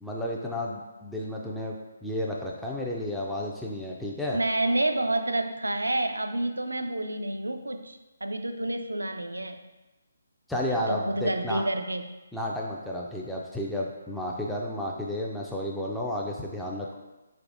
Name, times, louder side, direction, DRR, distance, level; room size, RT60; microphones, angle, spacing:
voice 1, 0.0-4.4 10.5-11.6 12.3-17.0, left 1 dB, ahead, -4 dB, 0.3 m, -32 dB
voice 2, 4.3-9.6 10.9-12.1, right 1 dB, 85° right, 7 dB, 0.4 m, -29 dB
4.5 x 3.3 x 2.5 m, 1.1 s
figure-of-eight pair, 145°, 0 cm